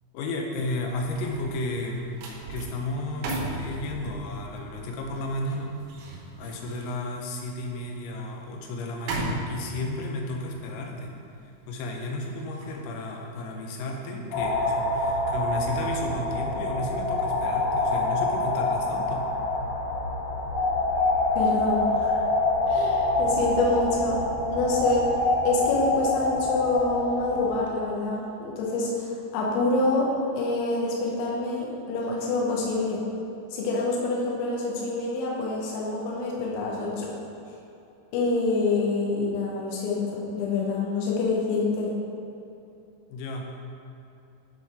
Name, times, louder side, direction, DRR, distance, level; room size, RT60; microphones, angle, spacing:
voice 1, 0.1-5.7 6.4-11.1 11.7-19.3 43.1-43.5, left 2 dB, 90° left, 1 dB, 3.6 m, -33 dB
sound 1, 0.7-14.0 14.4-14.7, right 3 dB, 80° right, 2.2 m, -39 dB
sound 2, 14.3-27.6, left 2 dB, 55° left, 2.4 m, -26 dB
voice 2, 21.4-22.2 22.7-24.2 24.5-25.0 25.4-30.1 30.3-33.0 33.5-37.1 38.1-41.9, left 3 dB, 75° left, -3 dB, 3.3 m, -26 dB
10.0 x 4.1 x 4.8 m, 2.8 s
omnidirectional pair, 5.9 m